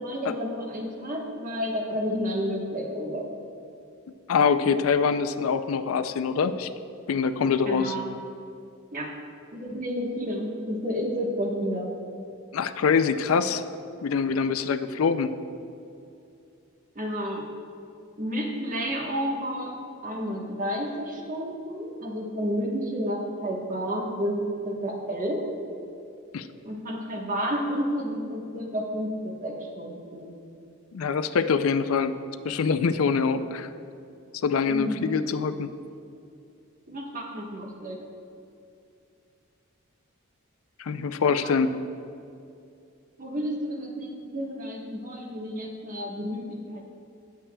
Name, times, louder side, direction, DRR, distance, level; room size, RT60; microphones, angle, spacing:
voice 1, 0.0-3.4 7.6-8.1 8.9-9.1 9.5-12.0 16.9-17.5 18.2-19.7 20.0-25.5 26.6-30.4 34.7-35.2 36.9-38.0 41.4-41.7 43.2-46.8, equal, 40° right, 0 dB, 1.2 m, -31 dB
voice 2, 4.3-6.7 7.1-7.9 12.5-13.6 14.0-15.3 26.3-26.5 30.9-32.2 32.4-33.7 34.4-35.7 40.8-41.8, left 5 dB, 80° left, 11 dB, 0.4 m, -24 dB
18.5 x 7.3 x 2.2 m, 2.6 s
head